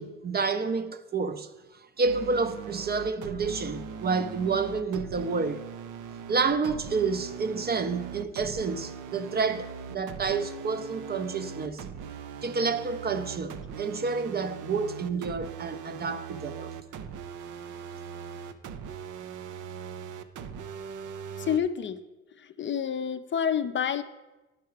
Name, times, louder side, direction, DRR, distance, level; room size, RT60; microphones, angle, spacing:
voice 1, 0.0-1.5 2.0-5.6 6.3-11.8 12.4-16.7, right 4 dB, 35° right, 0.5 m, -29 dB
sound 1, 2.0-21.6, right 6 dB, 80° right, 0.5 m, -40 dB
voice 2, 21.4-22.0 22.3-24.0, left 8 dB, 40° left, 0.4 m, -28 dB
10.5 x 4.7 x 4.6 m
cardioid pair, 90°, 30 cm